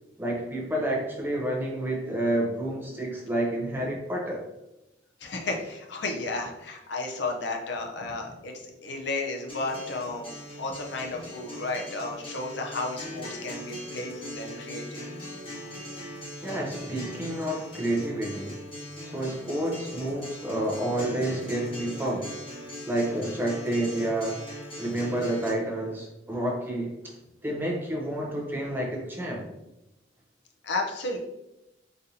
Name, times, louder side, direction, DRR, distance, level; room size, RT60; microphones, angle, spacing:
voice 1, 0.2-4.4 16.4-18.6 19.0-22.3 22.9-24.4 24.8-27.1 27.4-29.5, right 1 dB, 10° right, -1 dB, 0.5 m, -29 dB
voice 2, 5.2-15.1 30.6-31.2, left 2 dB, 65° left, 2 dB, 0.5 m, -33 dB
Acoustic guitar, 9.5-25.5, left 1 dB, 30° left, 1.0 m, -40 dB
4.0 x 2.6 x 2.7 m, 0.92 s
head